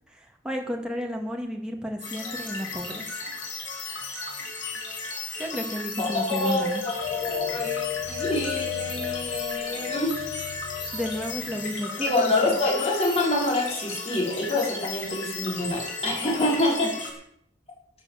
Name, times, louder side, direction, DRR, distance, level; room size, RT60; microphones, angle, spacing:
voice 1, 0.4-3.3 5.4-6.8 10.9-12.3 16.2-16.5, equal, 5° right, 1 dB, 2.3 m, -32 dB
sound 1, 2.0-17.1, left 3 dB, 75° left, 4.8 m, -35 dB
voice 2, 6.0-10.3 12.0-16.9, left 2 dB, 35° left, -3 dB, 5.3 m, -26 dB
sound 2, 7.0-12.0, left 11 dB, 55° left, 2.9 m, -34 dB
13.5 x 8.2 x 7.7 m, 0.70 s
head